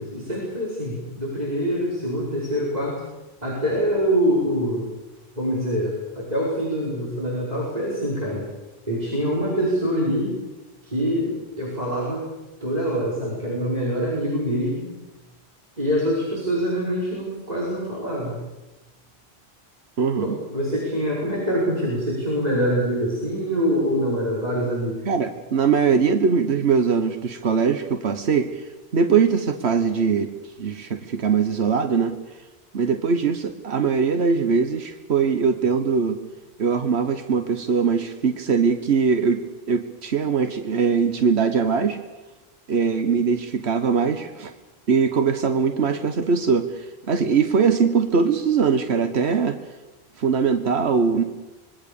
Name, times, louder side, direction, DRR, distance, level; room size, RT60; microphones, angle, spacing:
voice 1, 0.0-3.0 3.4-4.9 5.4-8.5 8.9-10.3 10.8-12.3 12.6-14.9 15.8-18.4 20.2-25.1, equal, 40° right, -5 dB, 5.8 m, -25 dB
voice 2, 20.0-20.3 25.0-30.3 30.6-32.2 32.7-36.2 36.6-42.0 42.7-44.5 44.9-49.6 50.2-51.2, right 5 dB, 85° right, 8 dB, 1.5 m, -21 dB
25.5 x 22.0 x 7.1 m, 1.1 s
omnidirectional pair, 1.1 m